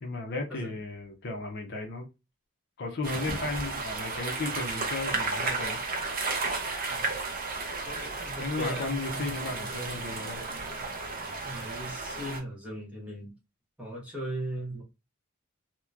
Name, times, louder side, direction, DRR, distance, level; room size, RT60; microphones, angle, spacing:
voice 1, 0.0-2.1 2.8-5.8 8.4-10.4, left 2 dB, 55° left, 0.6 m, -34 dB
sound 1, 3.0-12.4, right 3 dB, 45° right, 0.6 m, -33 dB
voice 2, 7.9-10.0 11.4-13.3 13.8-14.8, equal, 5° right, 1.0 m, -38 dB
2.8 x 2.1 x 2.3 m
head